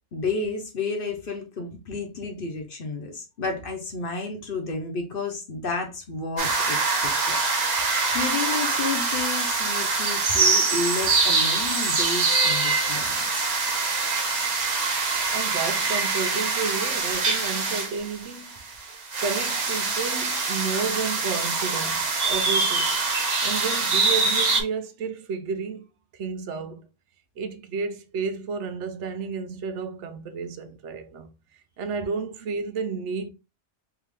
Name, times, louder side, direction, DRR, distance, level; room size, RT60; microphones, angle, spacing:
voice 1, 0.1-7.4 8.1-13.5, left 4 dB, 50° left, 0.9 m, -31 dB
sound 1, 6.4-24.6, right 4 dB, 40° right, 0.8 m, -24 dB
voice 2, 15.3-23.0 23.4-25.9 26.1-26.9 27.4-31.3 31.8-33.3, right 5 dB, 80° right, 0.9 m, -32 dB
3.5 x 2.9 x 3.1 m
omnidirectional pair, 1.2 m